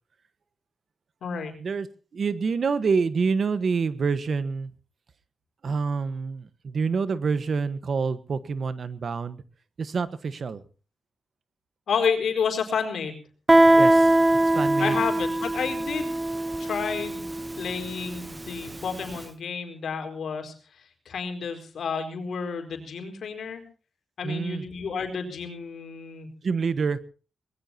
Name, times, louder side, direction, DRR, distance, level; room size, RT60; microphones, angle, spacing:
voice 1, 1.2-1.6 11.9-13.2 14.8-16.2 16.6-17.3 17.6-23.6 24.2-26.3, left 6 dB, 80° left, 4 dB, 4.3 m, -30 dB
voice 2, 2.1-4.7 5.6-9.4 9.8-10.6 13.8-14.2 14.4-14.9 24.2-24.6 26.4-27.0, right 5 dB, 60° right, 14 dB, 1.3 m, -27 dB
Guitar, 13.5-18.9, right 1 dB, 20° right, 0.9 m, -21 dB
23.5 x 20.0 x 2.9 m, 0.38 s
cardioid pair, 95°, 0 cm